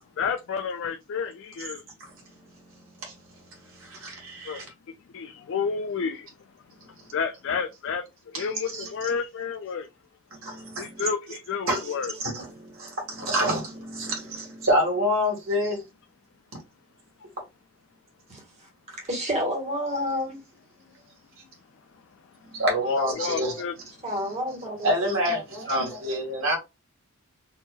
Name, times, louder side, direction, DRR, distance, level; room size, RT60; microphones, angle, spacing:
voice 1, 0.2-1.8 4.5-4.6 5.1-6.2 7.1-8.0 8.3-9.9 10.8-12.1 23.0-23.7, left 6 dB, 60° left, 0.4 m, -30 dB
voice 2, 2.0-4.6 8.3-8.5 8.7-8.9 10.4-11.1 11.7-15.8 22.5-23.6 24.8-26.6, equal, 65° right, 1.9 m, -28 dB
voice 3, 18.9-20.4 24.0-24.9, equal, 30° right, 1.5 m, -29 dB
4.3 x 2.7 x 2.3 m
head